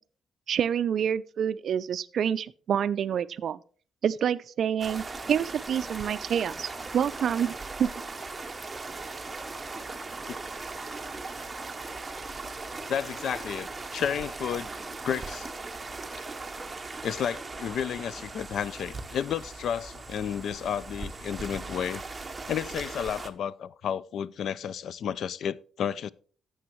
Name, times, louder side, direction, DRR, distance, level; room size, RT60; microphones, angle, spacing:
voice 1, 0.5-3.6 4.0-7.9, right 8 dB, 50° right, 0.4 m, -28 dB
sound 1, 4.8-23.3, right 3 dB, 15° right, 0.7 m, -39 dB
voice 2, 12.9-14.7 15.0-15.5 17.0-22.0 22.5-26.1, left 8 dB, 55° left, 0.3 m, -32 dB
11.5 x 7.8 x 3.0 m
cardioid pair, 170°, 0 cm